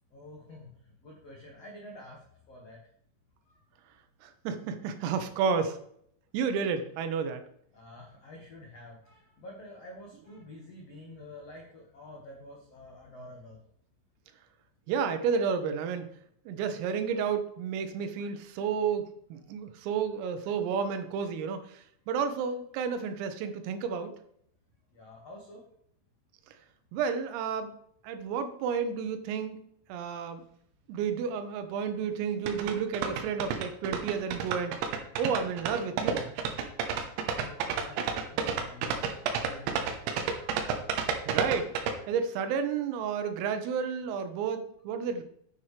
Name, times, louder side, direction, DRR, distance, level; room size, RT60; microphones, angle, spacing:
voice 1, 0.1-2.8 3.5-3.6 7.7-13.6 24.9-25.6 37.4-40.6, left 1 dB, 90° left, -2 dB, 1.4 m, -49 dB
voice 2, 4.2-5.8 6.3-7.4 14.9-16.1 16.5-24.2 26.9-27.7 28.0-29.6 29.9-30.4 30.9-34.8 35.2-36.3 41.3-41.7 42.1-45.2, right 6 dB, 90° right, 8 dB, 3.7 m, -31 dB
sound 1, 32.5-41.9, right 6 dB, 75° right, 3.0 m, -30 dB
10.0 x 9.2 x 3.3 m, 0.68 s
omnidirectional pair, 5.8 m